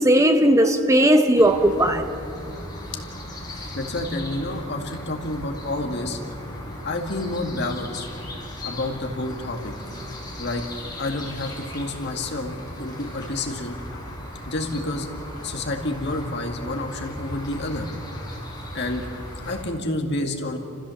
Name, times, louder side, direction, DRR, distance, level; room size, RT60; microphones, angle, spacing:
voice 1, 0.0-2.0, right 1 dB, 15° right, 0.9 m, -17 dB
sound 1, 1.4-19.6, left 1 dB, 20° left, 5.6 m, -37 dB
voice 2, 3.7-6.2 6.8-8.1 8.6-9.7 10.4-10.6 11.0-13.8 14.5-15.1 15.4-17.9 18.7-19.1 19.5-20.6, left 2 dB, 55° left, 2.2 m, -29 dB
29.5 x 15.0 x 7.2 m
head